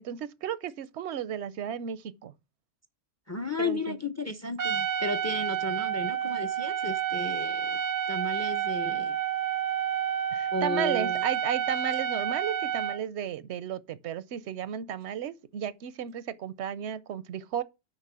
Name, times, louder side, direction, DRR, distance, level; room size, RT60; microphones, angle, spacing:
voice 1, 0.0-2.3 3.6-4.0 10.3-17.6, right 9 dB, 85° right, 0.9 m, -34 dB
voice 2, 3.3-7.8 8.1-9.2 10.5-11.2 15.6-15.7, left 3 dB, 20° left, 0.5 m, -34 dB
Trumpet, 4.6-13.0, right 10 dB, 55° right, 0.6 m, -30 dB
6.7 x 5.1 x 6.1 m
omnidirectional pair, 1.1 m